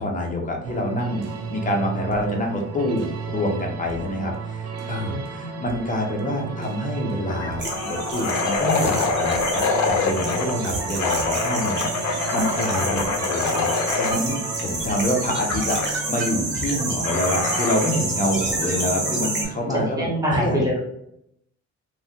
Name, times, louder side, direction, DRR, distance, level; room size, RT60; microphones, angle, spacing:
voice 1, 0.0-13.7 14.0-20.1 20.4-20.7, left 1 dB, 25° left, 0 dB, 0.8 m, -27 dB
sound 1, 0.6-19.9, right 5 dB, 60° right, 0.5 m, -34 dB
voice 2, 5.1-5.6 18.7-18.9 20.0-20.8, equal, 10° right, -4 dB, 1.2 m, -25 dB
sound 2, 6.0-6.3 6.6-6.7 7.3-10.5 11.0-14.2 15.5-15.9 17.0-18.0, left 5 dB, 65° left, 0.5 m, -25 dB
sound 3, 7.6-19.4, right 2 dB, 40° right, 1.2 m, -29 dB
3.1 x 2.3 x 2.7 m, 0.75 s
cardioid pair, 90°, 30 cm